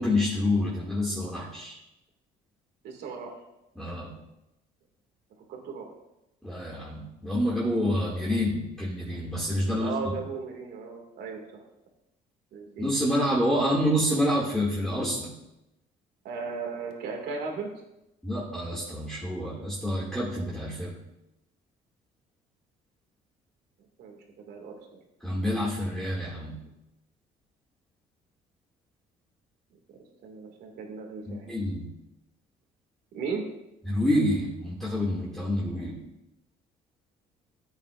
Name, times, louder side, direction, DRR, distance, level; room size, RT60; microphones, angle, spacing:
voice 1, 0.0-1.7 3.8-4.2 6.4-10.2 12.8-15.3 18.2-21.0 25.2-26.6 31.3-31.9 33.8-36.0, left 1 dB, 5° left, -7 dB, 2.3 m, -28 dB
voice 2, 2.8-3.3 5.5-5.9 9.6-11.6 12.5-12.9 16.2-17.7 24.0-25.0 30.2-31.5 33.1-33.4, right 5 dB, 75° right, 1 dB, 2.3 m, -36 dB
14.0 x 8.7 x 2.6 m, 0.89 s
cardioid pair, 110°, 17 cm